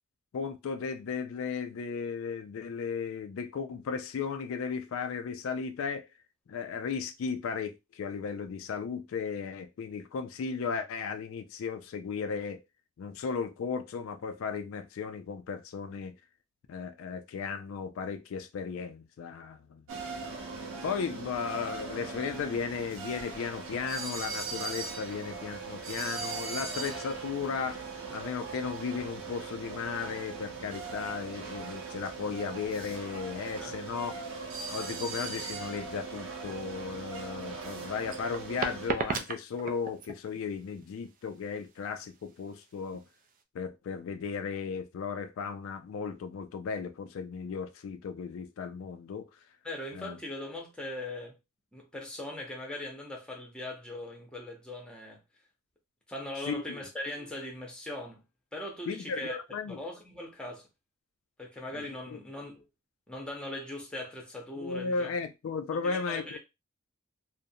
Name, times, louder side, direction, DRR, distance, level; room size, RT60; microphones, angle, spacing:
voice 1, 0.3-6.1 6.5-12.6 13.0-16.1 16.7-19.8 20.8-34.1 34.7-43.0 43.5-49.3 49.9-50.2 56.4-56.8 58.9-59.8 62.1-62.2 64.6-66.4, left 5 dB, 70° left, 0.3 m, -35 dB
sound 1, 19.9-38.9, right 4 dB, 80° right, 0.7 m, -39 dB
sound 2, 37.4-43.4, right 5 dB, 40° right, 0.3 m, -37 dB
voice 2, 49.6-51.4 51.7-55.2 56.1-58.2 58.5-59.4 59.7-60.7 61.4-62.6 63.1-65.1 65.7-66.4, left 1 dB, 5° left, 0.7 m, -40 dB
2.5 x 2.1 x 2.6 m
head